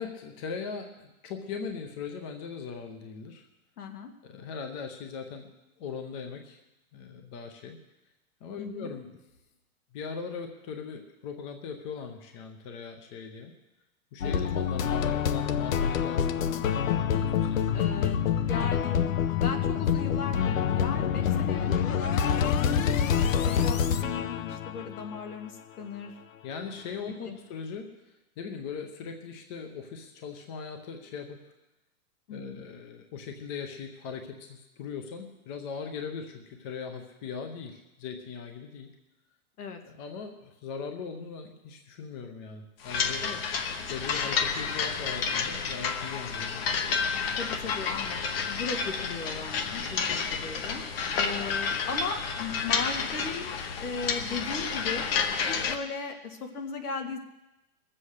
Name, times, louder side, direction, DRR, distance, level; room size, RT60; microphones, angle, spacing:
voice 1, 0.0-3.5 4.2-5.5 5.8-6.6 6.9-7.8 8.4-9.2 9.9-13.5 14.1-17.6 23.9-24.2 26.4-27.9 28.4-31.4 32.3-38.9 39.9-43.3 43.9-46.7, left 6 dB, 20° left, 5 dB, 0.8 m, -39 dB
voice 2, 3.8-4.1 8.6-8.9 14.2-14.4 17.7-18.2 18.5-19.0 19.4-26.1 27.0-27.4 32.3-32.6 39.6-39.8 43.2-43.4 47.4-50.8 51.2-53.5 53.8-55.1 55.4-57.2, left 4 dB, 85° left, 4 dB, 2.4 m, -37 dB
sound 1, 14.2-25.3, left 8 dB, 60° left, 0.9 m, -26 dB
sound 2, 42.8-55.8, left 6 dB, 40° left, 1.1 m, -30 dB
20.5 x 7.7 x 6.5 m, 0.98 s
hypercardioid pair, 170°, 44 cm